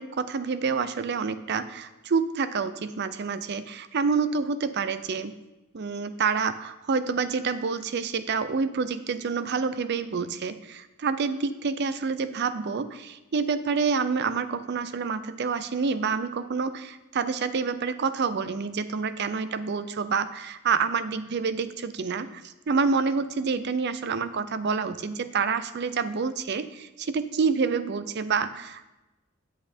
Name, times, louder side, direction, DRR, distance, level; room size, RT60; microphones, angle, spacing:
voice 1, 0.0-5.3 5.7-28.9, right 5 dB, 55° right, 13 dB, 0.5 m, -28 dB
8.7 x 7.7 x 4.4 m, 1.0 s
head